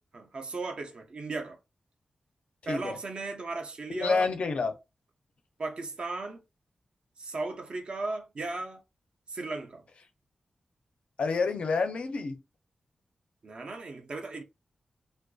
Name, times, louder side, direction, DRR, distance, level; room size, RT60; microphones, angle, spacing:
voice 1, 0.1-1.6 2.7-4.3 5.6-6.4 7.2-8.8 9.3-9.8 13.4-14.4, right 3 dB, 50° right, 0.5 m, -36 dB
voice 2, 2.6-3.0 3.9-4.8 11.2-12.4, left 4 dB, 65° left, 0.5 m, -28 dB
2.5 x 2.1 x 2.3 m
wide cardioid pair, 110°, 2 cm